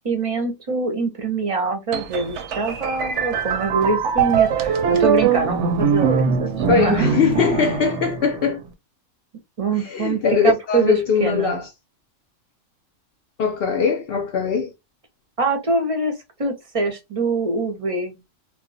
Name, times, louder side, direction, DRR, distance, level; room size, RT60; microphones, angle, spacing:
voice 1, 0.0-7.1 9.6-11.6 15.4-18.2, right 3 dB, 35° right, 0.6 m, -24 dB
sound 1, 1.9-8.6, right 7 dB, 70° right, 0.8 m, -22 dB
voice 2, 6.7-8.6 9.9-11.7 13.4-14.7, left 6 dB, 60° left, 0.6 m, -21 dB
2.3 x 2.1 x 3.8 m
omnidirectional pair, 1.3 m